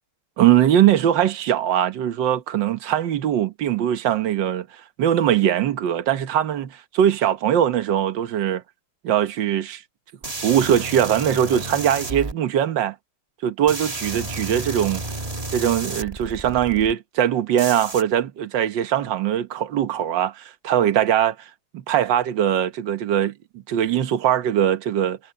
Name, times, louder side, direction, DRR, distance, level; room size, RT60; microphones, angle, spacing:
voice 1, 0.4-4.7 5.0-8.6 9.0-9.8 10.4-12.9 13.4-15.0 15.5-25.2, right 10 dB, 60° right, 1.7 m, -21 dB
sound 1, 10.2-12.3 13.7-16.9 17.6-18.0, right 2 dB, 20° right, 1.4 m, -31 dB
omnidirectional pair, 2.4 m